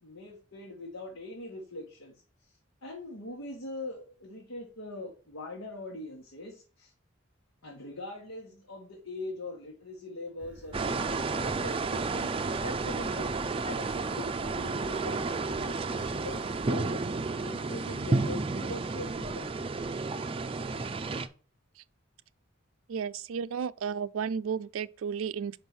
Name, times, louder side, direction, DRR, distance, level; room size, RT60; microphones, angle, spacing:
voice 1, 0.0-2.2 2.8-6.9 7.6-13.3 13.6-17.0 17.4-19.9, left 2 dB, 85° left, 1.6 m, -42 dB
sound 1, 10.4-16.7, equal, 5° right, 0.9 m, -50 dB
sound 2, 10.7-21.3, right 3 dB, 25° right, 0.4 m, -32 dB
voice 2, 22.9-25.6, right 6 dB, 85° right, 0.4 m, -33 dB
5.4 x 5.1 x 6.2 m
head